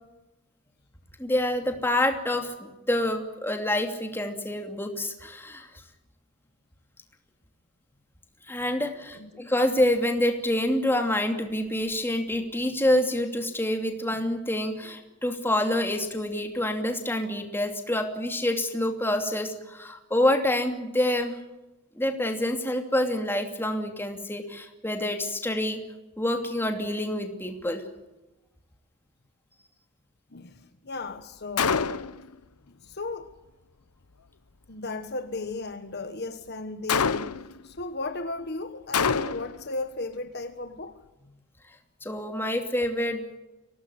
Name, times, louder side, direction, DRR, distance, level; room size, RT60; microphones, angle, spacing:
voice 1, 1.2-5.7 8.5-21.4 22.0-25.8 26.2-27.8 42.0-43.4, left 1 dB, 10° left, 2.6 m, -27 dB
voice 2, 30.3-32.1 32.7-33.4 34.7-41.0, left 3 dB, 45° left, 1.3 m, -35 dB
Gunshot gunfire, 31.6-32.3 36.9-37.6 38.9-39.6, left 6 dB, 90° left, 1.0 m, -25 dB
24.5 x 18.0 x 9.7 m
head